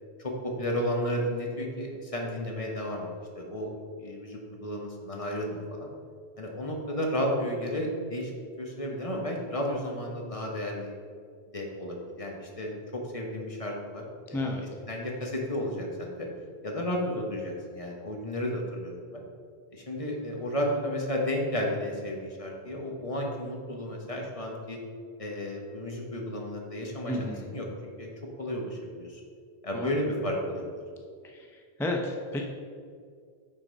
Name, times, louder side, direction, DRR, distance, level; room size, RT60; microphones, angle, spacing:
voice 1, 0.2-3.1 3.3-3.7 4.0-5.9 6.4-8.3 8.6-10.9 11.5-16.3 16.6-19.2 19.7-24.8 25.2-28.1 28.4-29.2 29.6-30.7, equal, 35° left, 0 dB, 1.1 m, -33 dB
voice 2, 14.3-14.6 27.1-27.5 29.7-29.9 31.3-31.5 31.8-32.4, left 1 dB, 5° left, 0 dB, 0.4 m, -31 dB
8.0 x 4.0 x 5.2 m, 2.1 s
omnidirectional pair, 1.0 m